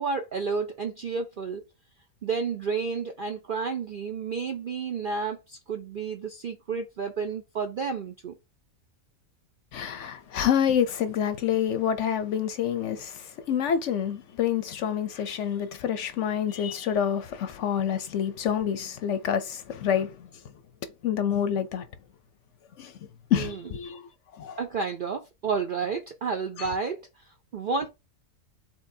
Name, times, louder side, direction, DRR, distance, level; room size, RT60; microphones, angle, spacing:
voice 1, 0.0-1.6 2.2-8.3 23.3-23.6 24.6-27.9, right 5 dB, 65° right, 0.5 m, -31 dB
voice 2, 9.7-20.3 21.0-21.9 22.8-22.9 23.3-24.1 24.3-24.6 26.6-26.7, left 9 dB, 65° left, 0.8 m, -27 dB
4.4 x 4.0 x 2.6 m
omnidirectional pair, 1.5 m